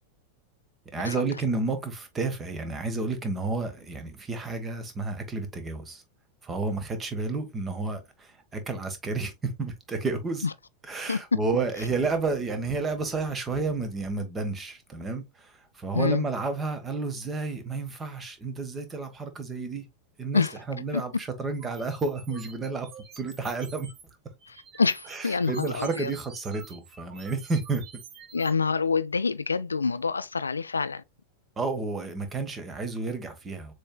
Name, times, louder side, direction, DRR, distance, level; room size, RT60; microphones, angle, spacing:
voice 1, 0.9-6.0 6.4-10.5 10.8-19.8 20.2-22.9 23.2-23.9 25.1-27.8 31.6-33.7, right 3 dB, 20° right, 1.3 m, -31 dB
sound 1, 21.5-24.0 24.4-28.5, right 7 dB, 40° right, 1.2 m, -48 dB
voice 2, 24.8-26.1 28.3-31.0, left 4 dB, 75° left, 0.3 m, -26 dB
6.9 x 3.2 x 2.3 m
figure-of-eight pair, 90°, 0 cm